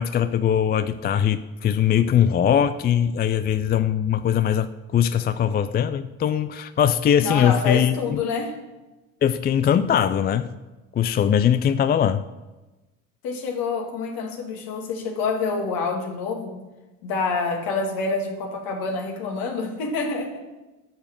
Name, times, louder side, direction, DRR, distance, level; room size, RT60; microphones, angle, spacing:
voice 1, 0.0-8.2 9.2-10.5 10.9-12.2, left 9 dB, 25° left, 13 dB, 0.4 m, -21 dB
voice 2, 7.2-8.5 13.2-16.6 17.0-20.4, left 4 dB, 60° left, 2 dB, 2.3 m, -27 dB
12.5 x 6.9 x 6.6 m, 1.1 s
figure-of-eight pair, 60°, 40 cm